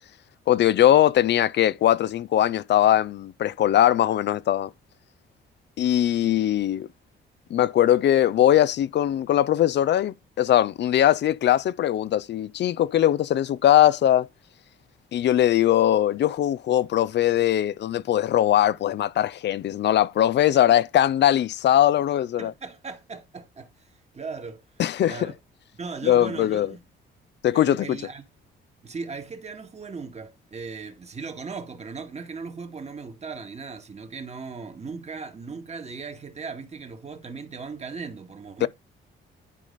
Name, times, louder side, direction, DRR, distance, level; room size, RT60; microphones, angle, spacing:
voice 1, 0.5-4.7 5.8-6.9 7.5-14.3 15.1-22.5 24.8-25.2 26.0-26.7 27.4-28.0 38.6-38.7, left 12 dB, 60° left, 0.6 m, -20 dB
voice 2, 22.4-24.6 25.0-25.3 25.8-26.8 27.5-28.2 28.8-38.7, right 4 dB, 35° right, 2.1 m, -38 dB
11.0 x 5.0 x 4.1 m
cardioid pair, 90°, 20 cm